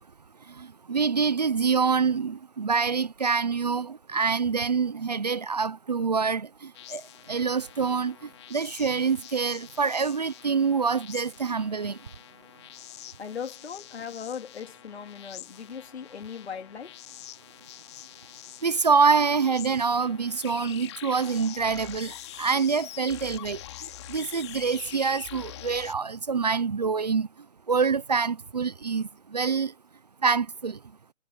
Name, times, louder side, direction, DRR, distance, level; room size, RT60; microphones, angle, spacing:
voice 1, 0.6-7.0 7.3-8.1 8.5-12.0 18.6-23.6 24.1-27.3 27.7-29.7 30.2-30.8, right 5 dB, 30° right, 0.8 m, -26 dB
sound 1, 6.7-25.9, left 14 dB, 20° left, 2.9 m, -45 dB
voice 2, 13.2-17.0, left 7 dB, 55° left, 4.0 m, -38 dB
hypercardioid pair, 170°, 39 cm